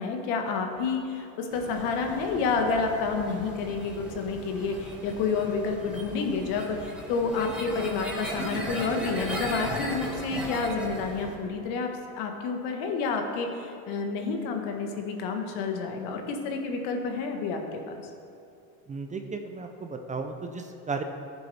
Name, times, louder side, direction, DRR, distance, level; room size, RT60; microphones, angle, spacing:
voice 1, 0.0-11.9 12.2-18.0, left 4 dB, 65° left, 4 dB, 1.5 m, -29 dB
sound 1, 1.5-11.3, right 1 dB, ahead, 1.8 m, -37 dB
voice 2, 18.9-21.0, right 4 dB, 20° right, 5 dB, 0.5 m, -34 dB
14.0 x 7.0 x 3.4 m, 2.5 s
supercardioid pair, 110°, 41 cm